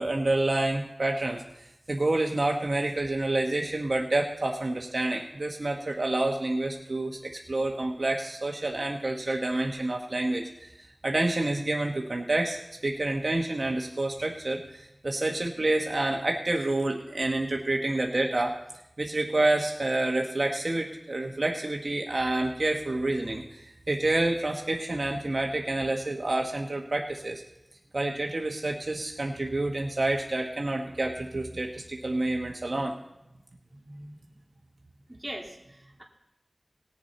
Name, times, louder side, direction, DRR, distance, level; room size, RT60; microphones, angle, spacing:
voice 1, 0.0-1.4 1.9-10.7 11.0-18.6 19.0-27.4 27.9-32.9, right 2 dB, 70° right, 1 dB, 1.0 m, -28 dB
voice 2, 33.7-34.2 35.1-36.0, right 1 dB, 15° right, -2 dB, 2.6 m, -42 dB
18.5 x 7.2 x 4.1 m, 0.90 s
wide cardioid pair, 60°, 0 cm